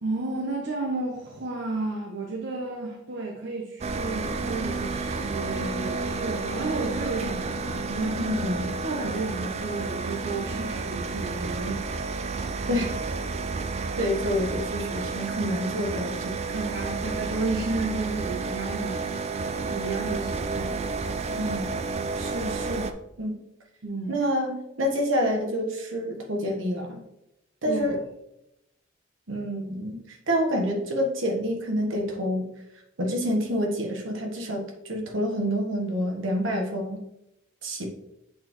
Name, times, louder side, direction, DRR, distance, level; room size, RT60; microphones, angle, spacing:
voice 1, 0.0-8.3 8.8-12.0 12.7-12.8 16.5-20.8 23.8-24.3 27.7-28.0, right 3 dB, 60° right, -1 dB, 0.8 m, -32 dB
sound 1, 3.8-22.9, right 4 dB, 35° right, 0.4 m, -31 dB
voice 2, 8.2-8.7 12.7-12.9 14.0-16.3 21.3-21.7 22.2-22.9 23.2-23.4 24.1-27.0 27.6-28.0 29.3-32.5 33.0-37.0 37.6-37.8, equal, 80° right, 2 dB, 1.2 m, -28 dB
7.5 x 4.2 x 3.0 m, 0.85 s
head